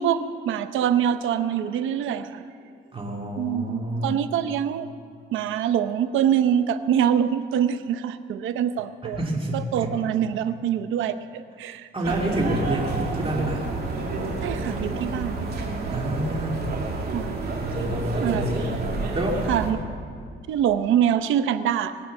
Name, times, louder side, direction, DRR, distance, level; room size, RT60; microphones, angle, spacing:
voice 1, 0.0-2.4 3.4-4.9 5.3-9.2 9.5-12.2 14.4-15.5 17.1-17.4 18.2-18.4 19.5-19.8 20.5-22.0, right 9 dB, 85° right, 10 dB, 0.7 m, -24 dB
voice 2, 2.9-4.2 9.0-10.1 11.9-13.6 15.9-16.7 17.6-18.8 19.1-19.5, right 1 dB, 25° right, -1 dB, 2.5 m, -28 dB
sound 1, 12.0-19.7, right 3 dB, 55° right, 2.8 m, -29 dB
19.5 x 8.7 x 7.3 m, 2.2 s
cardioid pair, 90°, 20 cm